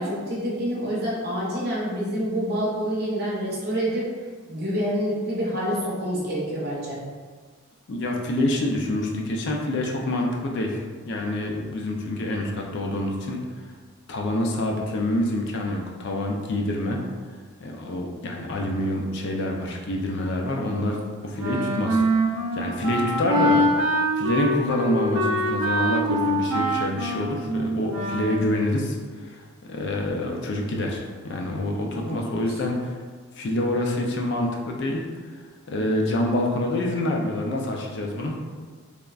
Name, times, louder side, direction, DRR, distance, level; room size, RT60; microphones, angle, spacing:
voice 1, 0.0-4.0 4.5-7.0 31.9-32.4, equal, 45° right, -5 dB, 0.7 m, -27 dB
voice 2, 7.9-13.4 14.1-17.0 17.6-22.0 22.5-23.6 24.2-29.0 29.2-29.4 29.7-32.9 33.3-35.1 35.7-38.4, left 1 dB, 50° left, 1 dB, 0.4 m, -26 dB
Wind instrument woodwind instrument, 21.4-28.5, right 1 dB, 85° right, 0.4 m, -24 dB
3.4 x 2.0 x 2.3 m, 1.5 s
head